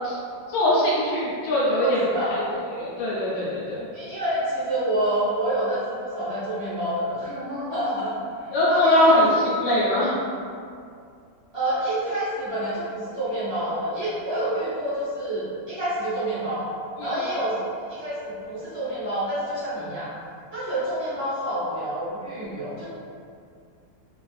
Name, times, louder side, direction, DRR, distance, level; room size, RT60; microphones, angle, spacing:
voice 1, 0.5-2.0 2.3-2.4 2.7-3.8 8.5-9.3 9.6-10.1 17.0-17.1, left 1 dB, 75° left, -8 dB, 1.3 m, -21 dB
voice 2, 1.8-2.4 3.9-8.2 8.4-9.2 9.8-10.0 11.5-16.7 17.0-20.1 20.5-22.9, right 1 dB, 15° right, -14 dB, 1.0 m, -28 dB
3.2 x 2.4 x 2.4 m, 2.3 s
omnidirectional pair, 2.0 m